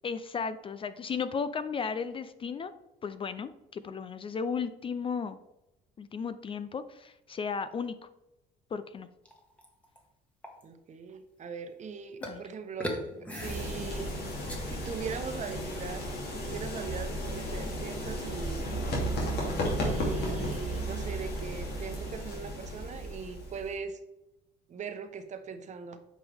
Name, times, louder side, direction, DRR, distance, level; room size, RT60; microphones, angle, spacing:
voice 1, 0.0-2.7 3.0-5.4 6.0-8.0 8.7-9.1 12.2-12.4, left 5 dB, 30° left, 12 dB, 0.4 m, -35 dB
sound 1, 9.3-10.0 10.4-10.6 12.2-12.4 12.8-14.6, equal, 10° left, 1.5 m, -39 dB
voice 2, 10.6-14.1 14.7-16.0 16.3-18.6 19.8-24.0 24.7-26.0, right 6 dB, 45° right, 7 dB, 1.0 m, -40 dB
sound 2, 13.4-23.7, equal, 70° left, 2.8 m, -34 dB
8.9 x 5.4 x 3.5 m, 0.93 s
cardioid pair, 110°, 17 cm